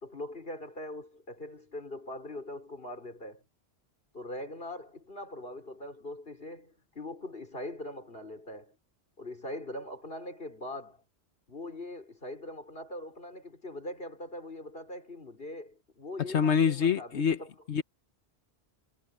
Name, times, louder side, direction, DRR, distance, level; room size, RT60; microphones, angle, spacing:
voice 1, 0.0-3.4 4.1-8.8 9.2-11.0 11.5-17.5, left 1 dB, 60° left, 5.3 m, -42 dB
voice 2, 16.3-17.4 17.7-17.8, left 6 dB, 90° left, 1.4 m, -25 dB
omnidirectional pair, 1.1 m